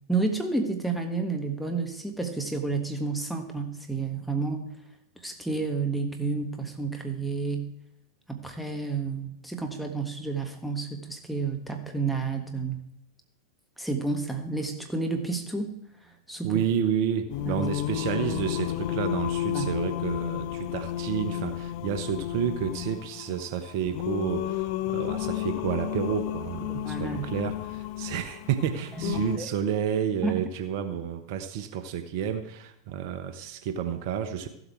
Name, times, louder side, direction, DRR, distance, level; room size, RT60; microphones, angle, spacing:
voice 1, 0.1-4.7 5.2-7.7 8.3-12.8 13.8-15.7 16.0-16.6 17.5-17.6 19.5-19.7 26.7-27.3 28.9-29.5 30.2-30.3, right 3 dB, ahead, 3 dB, 1.5 m, -30 dB
voice 2, 16.4-34.5, right 8 dB, 55° right, 8 dB, 1.1 m, -30 dB
Singing, 17.3-29.4, left 14 dB, 50° left, 0.5 m, -32 dB
15.0 x 8.0 x 4.6 m, 0.79 s
hypercardioid pair, 95°, 2 cm